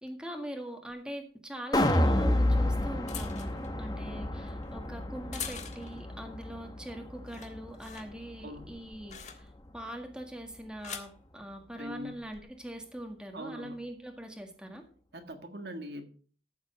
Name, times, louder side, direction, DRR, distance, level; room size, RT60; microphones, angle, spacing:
voice 1, 0.0-14.8, equal, 5° right, 3 dB, 1.8 m, -42 dB
sound 1, 0.9-1.0 2.1-6.1 6.5-6.9 7.2-9.8 10.5-11.2 12.1-12.4, left 6 dB, 40° left, 1.6 m, -45 dB
sound 2, 1.7-7.9 8.3-8.4, left 1 dB, 20° left, 1.1 m, -30 dB
voice 2, 11.8-12.1 13.3-13.7 15.1-16.1, equal, 65° right, 6 dB, 1.6 m, -42 dB
14.0 x 7.3 x 5.0 m, 0.42 s
head